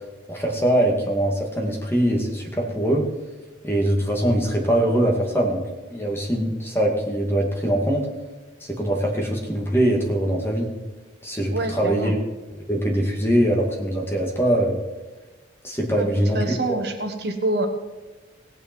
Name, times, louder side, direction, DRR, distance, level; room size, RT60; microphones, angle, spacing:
voice 1, 0.3-3.1 3.6-5.6 5.9-8.1 8.7-10.7 11.2-12.1 12.7-14.8 15.6-16.8, right 1 dB, 10° left, -1 dB, 2.3 m, -22 dB
voice 2, 11.5-12.1 16.0-16.1 16.3-17.7, right 2 dB, 55° right, 5 dB, 1.4 m, -26 dB
17.5 x 8.9 x 4.6 m, 1.2 s
head